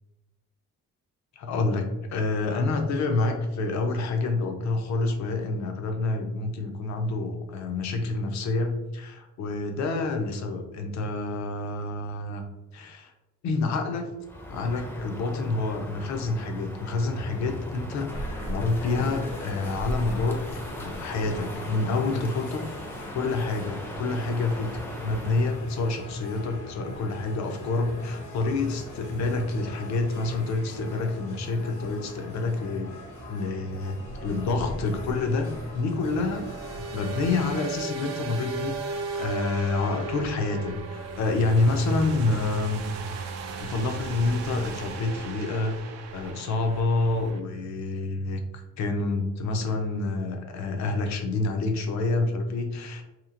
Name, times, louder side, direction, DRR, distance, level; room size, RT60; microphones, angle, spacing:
voice 1, 1.4-12.4 12.7-13.1 13.4-14.2 14.5-18.1 18.5-22.7 23.1-32.9 33.3-35.5 35.7-36.5 36.7-42.8 43.6-45.8 46.1-48.4 48.8-53.0, left 3 dB, 65° left, 5 dB, 0.5 m, -28 dB
Crow, 14.2-25.6, left 1 dB, 5° left, 0.5 m, -39 dB
sound 1, 18.1-37.6, equal, 80° left, 1.0 m, -40 dB
sound 2, 35.0-47.4, right 4 dB, 60° right, 0.4 m, -36 dB
2.9 x 2.4 x 2.4 m, 0.99 s
cardioid pair, 90°, 30 cm